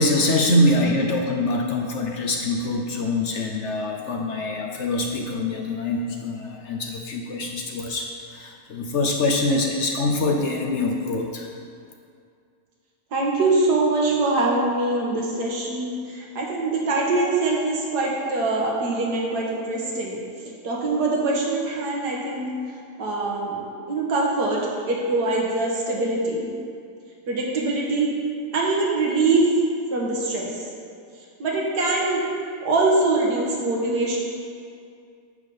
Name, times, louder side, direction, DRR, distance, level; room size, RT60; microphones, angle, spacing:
voice 1, 0.0-11.5, left 2 dB, 60° left, 1 dB, 0.8 m, -24 dB
voice 2, 13.1-20.2 20.6-22.5 23.0-26.5 27.3-28.1 28.5-29.5 29.9-30.5 31.4-32.2 32.6-34.2, right 2 dB, 80° right, -2 dB, 1.9 m, -23 dB
9.7 x 3.5 x 6.9 m, 2.3 s
omnidirectional pair, 1.7 m